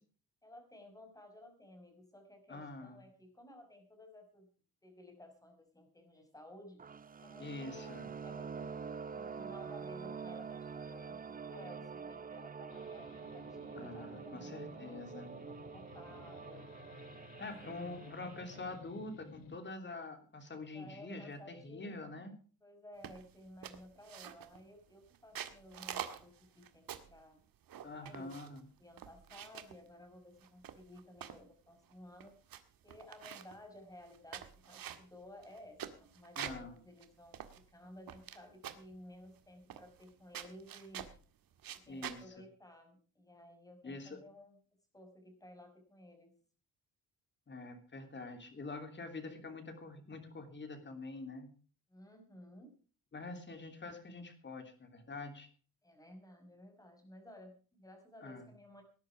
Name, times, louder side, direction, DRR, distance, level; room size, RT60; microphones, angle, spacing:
voice 1, 0.4-4.5 4.8-6.8 7.2-16.6 17.4-18.0 20.7-22.2 22.6-27.4 28.0-32.3 32.8-41.1 41.7-44.6 44.9-46.3 51.9-52.7 55.8-58.8, left 1 dB, 10° left, 5 dB, 5.4 m, -56 dB
voice 2, 2.5-3.0 7.4-8.1 13.7-15.3 17.4-22.3 27.8-28.6 36.4-36.8 41.9-42.2 43.8-44.2 47.5-51.5 53.1-55.5 58.2-58.5, left 3 dB, 30° left, 7 dB, 3.3 m, -46 dB
sound 1, 6.8-18.8, right 6 dB, 20° right, 0.7 m, -46 dB
sound 2, 12.7-19.6, left 5 dB, 60° left, 2.2 m, -55 dB
sound 3, 23.0-23.3 23.6-24.6 25.1-27.2 27.7-28.6 29.0-29.8 30.4-31.4 31.9-32.0 32.2-32.6 32.9-33.6 34.1-36.7 37.0-37.1 37.3-38.4 38.6-38.9 39.7-40.1 40.3-41.2 41.6-42.2, right 10 dB, 60° right, 1.8 m, -46 dB
19.0 x 11.0 x 4.8 m, 0.39 s
cardioid pair, 135°, 39 cm